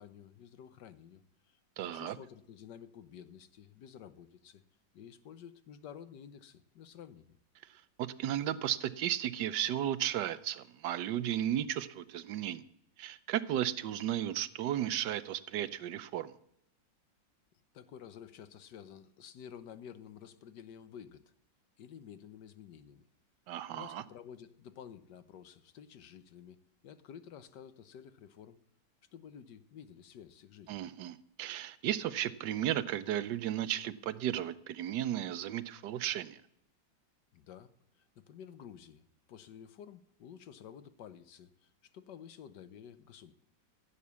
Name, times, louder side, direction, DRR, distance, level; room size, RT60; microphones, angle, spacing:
voice 1, 0.0-4.6 4.9-7.4 17.7-21.3 21.8-23.1 23.7-26.6 26.8-28.6 29.1-30.8 37.3-43.3, left 8 dB, 65° left, 12 dB, 1.4 m, -51 dB
voice 2, 1.8-2.2 8.0-12.6 13.0-16.3 23.5-24.0 30.7-36.4, right 11 dB, 70° right, 14 dB, 1.2 m, -34 dB
15.5 x 8.4 x 6.9 m, 0.74 s
omnidirectional pair, 2.1 m